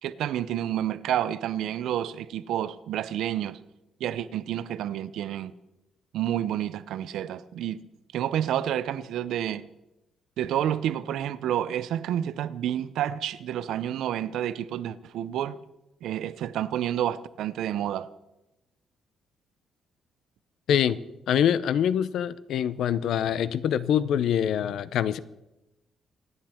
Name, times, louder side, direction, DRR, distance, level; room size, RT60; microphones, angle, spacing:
voice 1, 0.0-3.6 4.0-5.5 6.1-7.8 8.1-9.6 10.4-15.6 16.0-18.1, right 11 dB, 90° right, 0.7 m, -29 dB
voice 2, 20.7-21.0 21.3-25.2, left 9 dB, 70° left, 0.6 m, -24 dB
27.0 x 9.7 x 4.5 m
cardioid pair, 165°, 0 cm